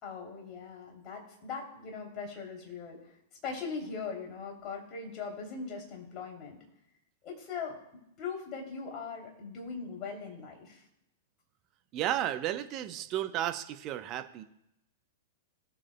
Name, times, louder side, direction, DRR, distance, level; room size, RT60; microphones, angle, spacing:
voice 1, 0.0-3.0 3.4-6.6 7.2-10.8, left 5 dB, 35° left, 0 dB, 3.0 m, -40 dB
voice 2, 11.9-14.4, right 12 dB, 35° right, 9 dB, 0.8 m, -33 dB
19.0 x 7.3 x 2.2 m, 0.82 s
figure-of-eight pair, 100°, 0 cm